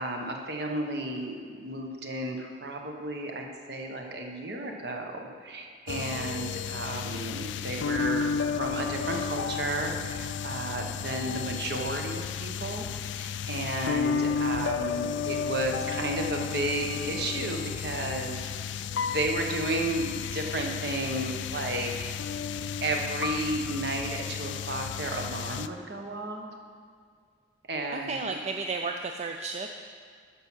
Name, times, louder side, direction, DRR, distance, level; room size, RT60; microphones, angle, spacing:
voice 1, 0.0-12.9 13.1-18.4 19.0-21.9 22.8-26.5 27.7-28.3, right 1 dB, 60° right, 2 dB, 1.1 m, -33 dB
sound 1, 5.9-25.7, left 6 dB, 75° left, 0.3 m, -33 dB
voice 2, 27.9-29.7, right 4 dB, 35° right, 5 dB, 0.4 m, -33 dB
11.5 x 5.7 x 6.2 m, 2.1 s
head